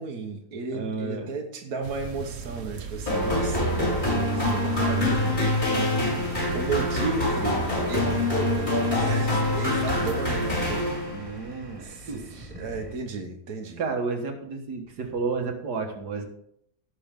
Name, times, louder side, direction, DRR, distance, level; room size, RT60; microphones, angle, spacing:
voice 1, 0.0-3.7 4.3-5.5 6.5-8.2 8.9-10.9 11.4-13.8, right 4 dB, 70° right, 2 dB, 1.6 m, -34 dB
voice 2, 0.7-1.3 4.1-4.6 11.1-12.2 13.8-16.2, right 4 dB, 85° right, 3 dB, 2.1 m, -32 dB
sound 1, 1.8-10.8, right 5 dB, 50° right, 1.1 m, -40 dB
sound 2, 3.1-11.4, left 1 dB, 30° left, 5.2 m, -25 dB
sound 3, 6.4-13.0, equal, 20° right, 1.9 m, -42 dB
17.5 x 6.2 x 3.7 m, 0.72 s
omnidirectional pair, 1.7 m